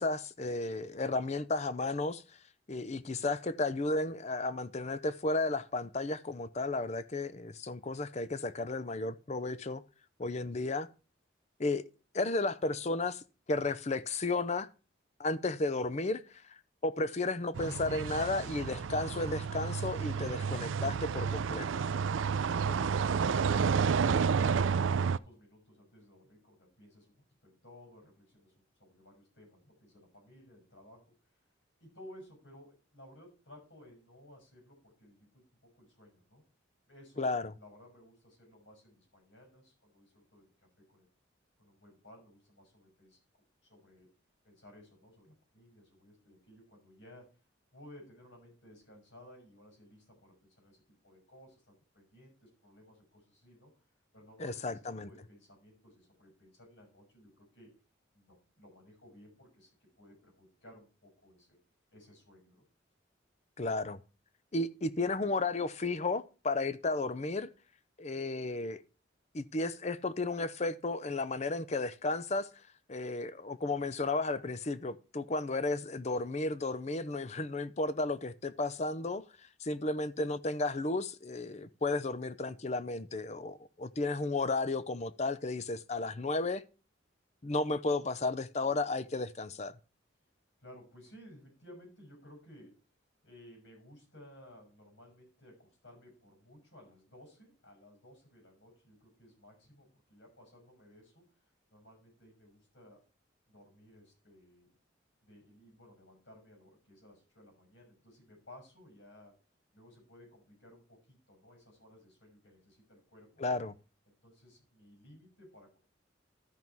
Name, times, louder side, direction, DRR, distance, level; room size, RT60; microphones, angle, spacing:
voice 1, 0.0-2.2 2.7-9.8 10.2-10.9 11.6-11.8 12.1-13.2 13.5-14.7 15.2-16.2 16.5-16.6 16.8-21.8 37.2-37.5 54.4-55.1 63.6-64.0 64.5-67.5 68.0-68.8 69.3-72.5 72.9-79.2 79.6-86.6 87.4-89.7 113.4-113.7, left 2 dB, 35° left, 0.6 m, -33 dB
voice 2, 10.2-10.6 22.6-27.1 27.4-28.5 28.8-31.0 31.8-36.4 36.9-41.1 41.6-43.2 43.6-44.1 44.4-47.4 47.7-53.7 54.1-54.8 55.0-57.7 58.1-59.7 60.0-61.6 61.9-62.6 90.6-92.8 93.2-101.3 101.7-103.0 103.5-104.7 105.2-109.3 109.7-113.6 114.2-115.8, left 1 dB, 70° left, 6.3 m, -57 dB
sound 1, 17.5-25.2, right 6 dB, 85° right, 0.4 m, -30 dB
13.5 x 5.6 x 4.6 m
head